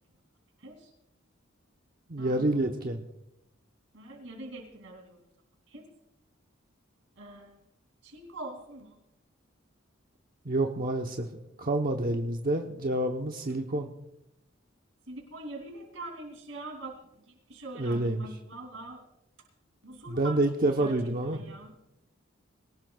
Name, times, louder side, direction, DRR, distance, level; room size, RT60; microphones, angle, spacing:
voice 1, 0.6-0.9 2.2-2.6 3.9-5.2 5.7-5.9 7.2-7.6 8.0-9.0 15.1-19.0 19.8-21.7, right 2 dB, 75° right, 2 dB, 2.8 m, -43 dB
voice 2, 2.1-3.0 10.4-11.3 11.6-13.9 17.8-18.2 20.1-21.4, right 2 dB, 45° right, 3 dB, 1.0 m, -28 dB
22.0 x 18.5 x 2.4 m, 0.84 s
head